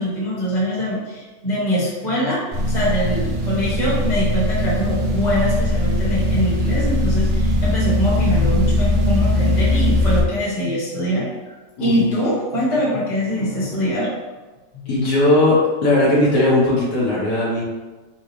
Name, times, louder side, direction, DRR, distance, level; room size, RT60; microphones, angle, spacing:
voice 1, 0.0-11.3 11.8-14.1, equal, 25° left, -8 dB, 1.2 m, -23 dB
sound 1, 2.5-10.2, left 1 dB, 75° right, 1.4 m, -20 dB
voice 2, 11.8-12.1 14.9-17.6, left 2 dB, 70° left, -7 dB, 1.8 m, -18 dB
6.2 x 2.3 x 3.1 m, 1.2 s
omnidirectional pair, 2.0 m